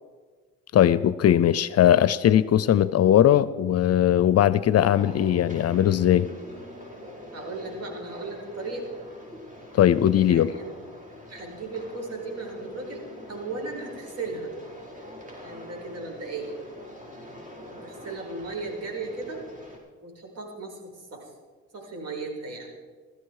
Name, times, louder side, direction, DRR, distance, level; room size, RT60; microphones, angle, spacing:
voice 1, 0.7-6.3 9.7-10.5, left 11 dB, 55° left, 17 dB, 0.6 m, -19 dB
sound 1, 4.8-19.8, left 1 dB, 25° right, 5.3 m, -44 dB
voice 2, 7.3-8.9 10.2-10.7 11.3-13.0 13.3-14.5 15.4-16.6 17.8-19.4 20.0-21.3 21.7-22.7, right 3 dB, 55° right, 1 dB, 5.5 m, -36 dB
18.5 x 14.0 x 4.8 m, 1.5 s
cardioid pair, 90°, 30 cm